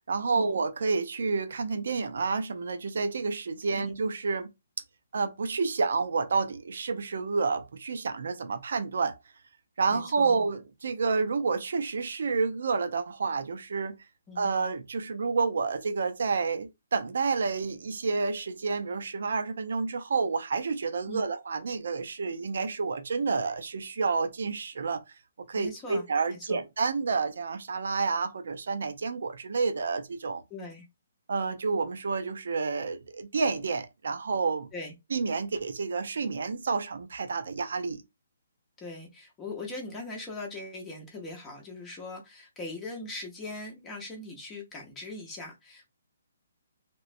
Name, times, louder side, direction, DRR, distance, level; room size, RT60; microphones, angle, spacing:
voice 1, 0.0-4.5 5.1-9.2 9.8-13.9 14.4-25.0 25.5-30.4 31.3-34.7 35.1-38.0, right 4 dB, 70° right, 0.6 m, -29 dB
voice 2, 9.9-10.4 14.3-14.5 21.1-21.2 25.5-26.1 26.3-26.6 30.5-30.9 34.7-34.9 38.8-45.9, left 2 dB, 10° left, 0.7 m, -40 dB
3.1 x 3.0 x 2.5 m
hypercardioid pair, 170°, 0 cm